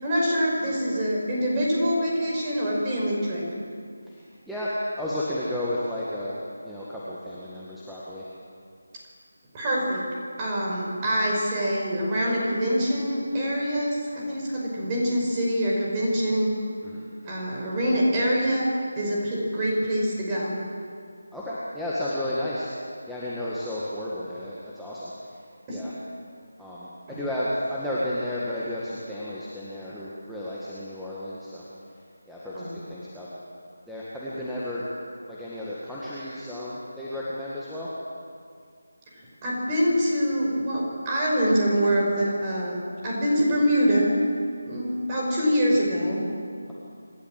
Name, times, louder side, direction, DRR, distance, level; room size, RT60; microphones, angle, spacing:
voice 1, 0.0-3.4 9.5-10.0 10.4-16.5 17.2-18.7 19.0-20.5 25.7-25.8 27.1-27.2 32.5-32.7 39.4-42.8 43.0-44.1 44.6-46.2, equal, 20° right, -4 dB, 5.4 m, -25 dB
voice 2, 5.0-6.4 6.6-8.2 16.8-17.1 21.3-22.7 23.1-25.1 25.7-25.9 26.6-31.6 32.3-32.6 32.9-33.3 33.9-34.9 35.3-37.9, left 1 dB, ahead, -11 dB, 1.9 m, -32 dB
26.5 x 13.0 x 7.8 m, 2.2 s
figure-of-eight pair, 160°, 0 cm